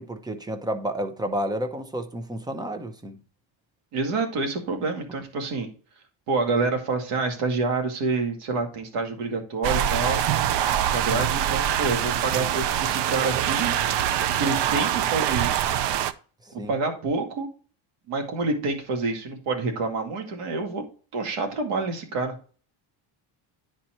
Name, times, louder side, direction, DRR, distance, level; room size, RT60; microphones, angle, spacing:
voice 1, 0.0-3.2 16.6-16.7, equal, 10° right, 0.7 m, -30 dB
voice 2, 3.9-5.7 6.3-10.2 10.8-13.7 14.4-15.7 16.5-17.5 18.1-20.8 21.1-22.3, right 3 dB, 90° right, 2.3 m, -27 dB
sound 1, 9.6-16.1, right 10 dB, 55° right, 0.6 m, -24 dB
10.0 x 4.3 x 4.4 m
cardioid pair, 165°, 49 cm